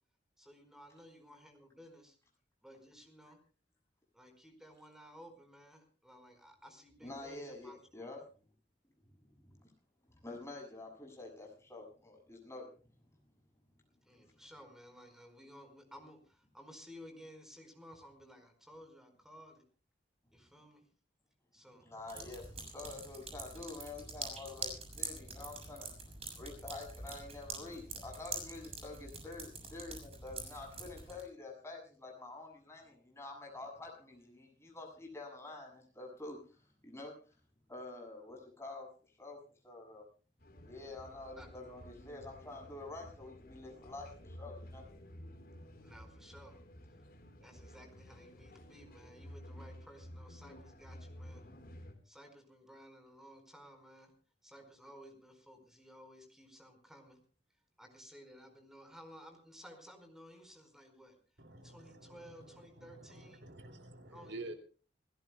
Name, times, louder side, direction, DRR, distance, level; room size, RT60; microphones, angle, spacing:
voice 1, 0.4-2.2 2.6-3.4 4.1-8.1 14.0-19.6 20.3-20.8 21.5-21.9 41.4-41.5 45.8-46.6 47.4-51.4 52.0-54.1 54.4-57.2 57.8-61.2 61.6-63.4 64.1-64.6, equal, 5° right, 5 dB, 4.7 m, -56 dB
voice 2, 7.0-8.2 9.4-9.6 10.2-12.7 21.8-25.9 26.4-37.3 37.7-39.4 39.6-40.1 40.6-44.9, left 2 dB, 15° left, 1 dB, 7.2 m, -48 dB
sound 1, 22.1-31.2, right 3 dB, 30° right, 7.0 m, -45 dB
sound 2, 40.4-51.9, equal, 50° left, 4.4 m, -53 dB
voice 3, 61.4-64.5, right 2 dB, 65° right, 6 dB, 2.6 m, -49 dB
28.5 x 16.5 x 2.3 m, 0.38 s
head